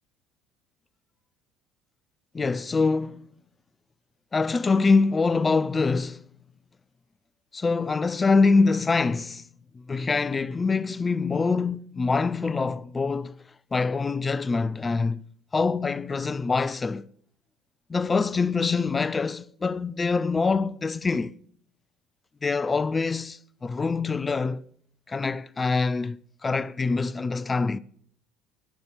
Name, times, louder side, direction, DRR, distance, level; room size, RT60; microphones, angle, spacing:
voice 1, 2.3-3.3 4.3-6.2 7.5-9.5 9.7-13.4 13.7-15.2 15.5-17.0 17.9-21.3 22.4-24.6 25.1-27.8, left 4 dB, 25° left, 0.4 m, -25 dB
10.0 x 5.3 x 6.9 m
hypercardioid pair, 65°, 0 cm